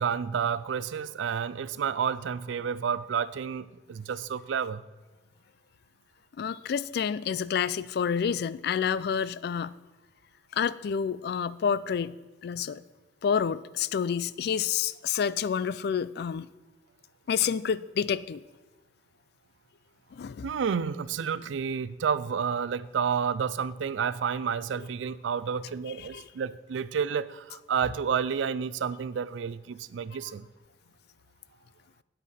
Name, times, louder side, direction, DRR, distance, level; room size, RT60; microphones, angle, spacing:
voice 1, 0.0-4.8 20.4-30.5, right 7 dB, 85° right, 17 dB, 0.4 m, -30 dB
voice 2, 6.4-9.7 10.5-12.2 12.4-12.8 13.2-16.5 17.3-18.4 20.1-20.5 26.0-26.3 30.1-30.3, left 7 dB, 60° left, 18 dB, 0.3 m, -29 dB
9.2 x 8.5 x 4.2 m, 1.2 s
head